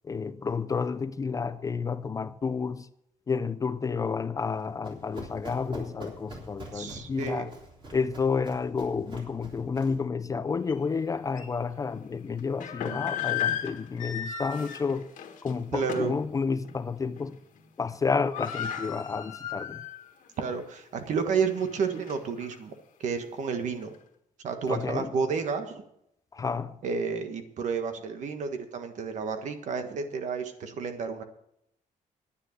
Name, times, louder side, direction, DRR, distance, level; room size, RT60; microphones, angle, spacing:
voice 1, 0.0-2.9 3.3-7.5 7.9-15.1 15.4-17.4 17.8-19.8 24.7-25.1 26.3-26.8, left 5 dB, 25° left, 0.4 m, -30 dB
Run, 4.5-10.1, right 2 dB, 35° right, 3.5 m, -46 dB
voice 2, 6.7-7.5 15.7-16.1 20.4-22.7 23.0-23.9 24.4-25.8 26.8-31.2, right 5 dB, 60° right, 1.5 m, -31 dB
sound 1, 10.7-10.8 11.4-11.5 12.4-16.2 16.6-16.8 17.2-17.6 17.8-17.9 18.1-20.1 20.5-20.6 21.2-22.5, left 8 dB, 70° left, 1.7 m, -35 dB
10.0 x 10.0 x 6.6 m
cardioid pair, 160°, 14 cm